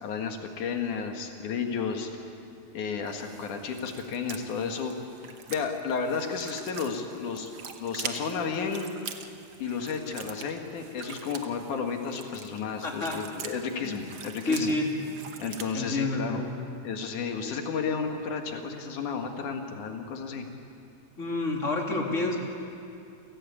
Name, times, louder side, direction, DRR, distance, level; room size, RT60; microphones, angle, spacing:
voice 1, 0.0-2.1 2.7-4.9 5.2-7.5 7.8-8.9 9.6-14.7 15.4-16.4 16.8-20.4, left 5 dB, 70° left, 4 dB, 3.2 m, -32 dB
sound 1, 3.0-15.7, right 7 dB, 55° right, 1.5 m, -44 dB
voice 2, 12.8-13.1 13.8-14.0 14.4-14.9 15.7-16.6 21.2-22.4, left 2 dB, 25° left, 0 dB, 2.9 m, -29 dB
29.0 x 17.0 x 8.5 m, 2.6 s
omnidirectional pair, 3.6 m